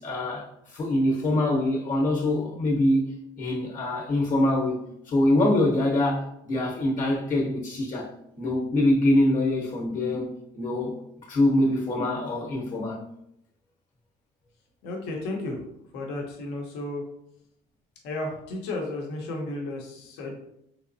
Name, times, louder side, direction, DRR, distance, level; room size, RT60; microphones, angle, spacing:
voice 1, 0.0-3.0 3.4-8.1 8.4-11.0 11.3-13.0, left 1 dB, 50° left, -1 dB, 0.9 m, -24 dB
voice 2, 14.8-15.5 15.9-17.0 18.0-20.3, left 2 dB, 85° left, 0 dB, 0.9 m, -33 dB
3.4 x 2.9 x 2.6 m, 0.75 s
cardioid pair, 110°, 17 cm